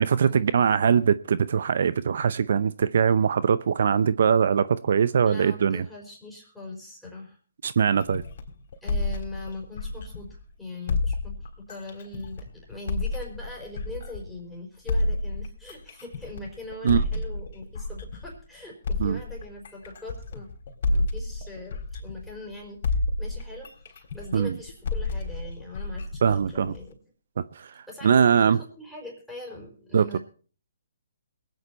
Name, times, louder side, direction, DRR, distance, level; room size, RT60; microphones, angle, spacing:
voice 1, 0.0-5.9 7.6-8.2 16.8-17.0 19.0-19.2 24.3-24.5 26.2-26.7 27.4-28.6 29.9-30.2, right 7 dB, 60° right, 0.6 m, -22 dB
voice 2, 5.2-7.4 8.8-20.5 20.9-26.9 27.9-30.2, left 2 dB, ahead, 4.6 m, -41 dB
sound 1, 8.0-10.4 10.9-14.4 14.9-18.4 18.8-22.5 22.8-26.9, left 2 dB, 50° left, 3.8 m, -30 dB
22.5 x 9.5 x 4.3 m
hypercardioid pair, 140°, 0 cm